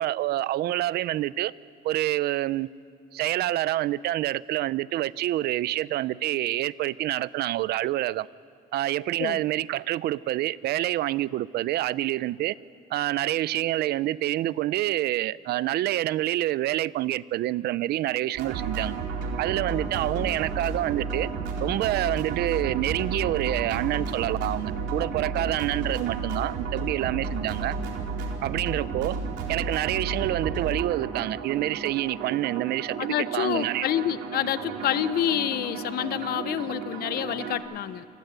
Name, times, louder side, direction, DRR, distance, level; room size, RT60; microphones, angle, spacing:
voice 1, 0.0-1.5 1.8-2.7 3.1-8.3 8.7-12.5 12.9-19.0 19.4-21.3 21.6-27.7 28.4-29.2 29.5-33.9, right 14 dB, 70° right, 18 dB, 0.7 m, -27 dB
sound 1, 18.3-37.6, right 4 dB, 90° right, 4.0 m, -32 dB
voice 2, 33.0-38.0, left 11 dB, 65° left, 15 dB, 1.0 m, -28 dB
28.0 x 20.0 x 8.2 m, 2.5 s
cardioid pair, 110°, 17 cm